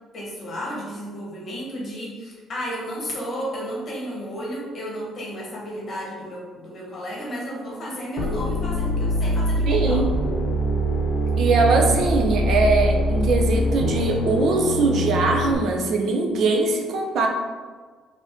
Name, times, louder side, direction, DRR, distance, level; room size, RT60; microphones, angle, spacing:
voice 1, 0.1-10.0, equal, 35° left, -3 dB, 1.2 m, -32 dB
sound 1, 8.2-15.5, equal, 75° left, 0.6 m, -23 dB
voice 2, 9.7-10.1 11.4-17.3, right 3 dB, 55° right, 2 dB, 0.5 m, -21 dB
5.1 x 2.6 x 3.5 m, 1.4 s
cardioid pair, 165°, 0 cm